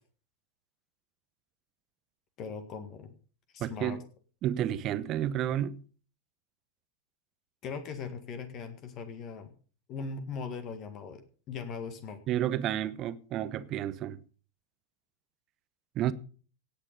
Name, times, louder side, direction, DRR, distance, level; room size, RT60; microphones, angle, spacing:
voice 1, 2.4-3.1 3.5-4.0 7.6-9.5 9.9-12.2, left 5 dB, 35° left, 1.9 m, -39 dB
voice 2, 3.6-4.0 4.4-5.8 12.3-14.2 15.9-16.1, right 11 dB, 35° right, 0.9 m, -31 dB
17.5 x 8.9 x 5.3 m
figure-of-eight pair, 90°, 0 cm